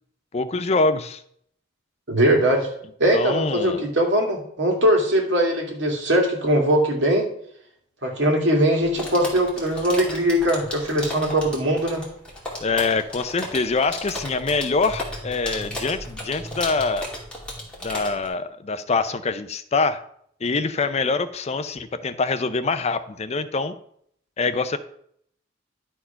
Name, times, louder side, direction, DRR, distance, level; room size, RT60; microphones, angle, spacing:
voice 1, 0.3-1.2 3.1-3.8 12.6-17.1 17.8-20.0 20.4-23.7 24.4-24.8, left 3 dB, 35° left, 12 dB, 0.5 m, -24 dB
voice 2, 2.1-2.7 3.0-7.3 8.0-12.0, right 1 dB, 70° right, 1 dB, 2.2 m, -21 dB
sound 1, 8.8-18.3, left 1 dB, 5° left, 2.5 m, -35 dB
11.0 x 4.4 x 5.7 m, 0.68 s
head